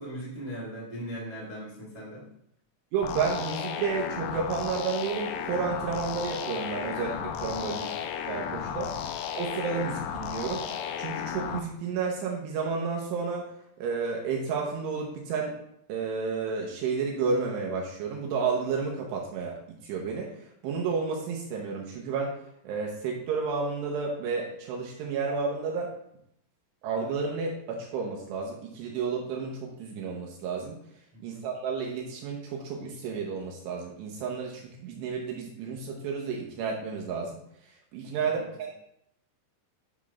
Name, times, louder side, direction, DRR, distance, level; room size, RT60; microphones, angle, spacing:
voice 1, 0.0-2.2 7.7-8.0 8.7-9.0 31.1-31.4 38.2-38.5, equal, 40° right, -7 dB, 0.4 m, -40 dB
voice 2, 2.9-7.9 8.2-8.9 9.4-10.6 11.0-13.5 13.8-15.5 15.9-22.4 22.6-25.9 26.8-30.8 31.2-38.7, right 5 dB, 80° right, -1 dB, 2.5 m, -31 dB
sound 1, 3.0-11.6, left 8 dB, 85° left, 2.7 m, -34 dB
10.0 x 5.9 x 2.4 m, 0.73 s
omnidirectional pair, 5.9 m